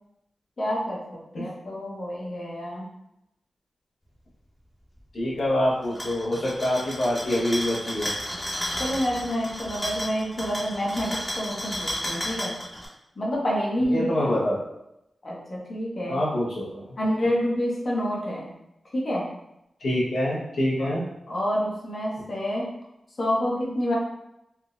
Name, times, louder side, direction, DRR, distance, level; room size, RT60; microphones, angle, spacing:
voice 1, 0.6-2.9 8.8-12.5 13.2-14.1 15.2-16.2 17.0-18.5 18.9-19.2 20.8-20.9 21.3-22.7 23.2-23.9, equal, 50° left, -4 dB, 0.8 m, -28 dB
voice 2, 5.1-8.1 13.9-14.6 16.1-16.8 19.8-21.0, left 1 dB, 80° left, -7 dB, 1.0 m, -25 dB
sound 1, 5.8-12.9, equal, 10° left, 0.7 m, -33 dB
3.4 x 2.0 x 2.4 m, 0.84 s
wide cardioid pair, 80°, 0 cm